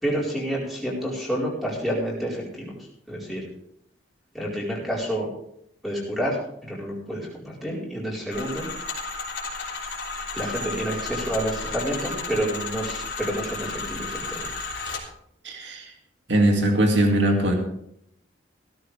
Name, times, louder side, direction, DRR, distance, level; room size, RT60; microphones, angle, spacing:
voice 1, 0.0-2.8 3.1-3.4 4.3-5.3 5.8-8.7 10.3-14.5, equal, ahead, -5 dB, 4.6 m, -29 dB
sound 1, 8.3-15.0, left 3 dB, 75° left, 3.5 m, -33 dB
voice 2, 15.4-15.8 16.3-17.5, right 1 dB, 70° right, 2 dB, 2.4 m, -20 dB
16.5 x 13.5 x 3.5 m, 0.72 s
head